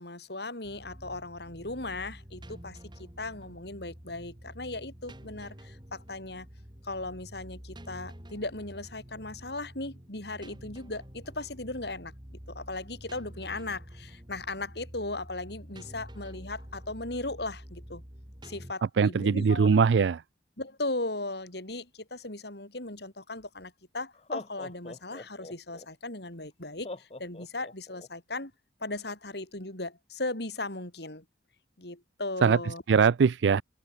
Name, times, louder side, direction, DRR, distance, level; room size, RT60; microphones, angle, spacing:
voice 1, 0.0-6.5 6.8-18.0 18.4-19.8 20.6-28.5 28.8-31.2 31.8-32.8, left 2 dB, 65° left, 5.6 m, -37 dB
sound 1, 0.6-18.7, equal, 25° right, 3.4 m, -48 dB
voice 2, 19.0-20.2 32.4-33.6, right 5 dB, 85° right, 0.4 m, -22 dB
Laughter, 23.4-23.5 24.1-25.9 26.8-28.1, left 2 dB, 35° left, 1.4 m, -42 dB
open air
head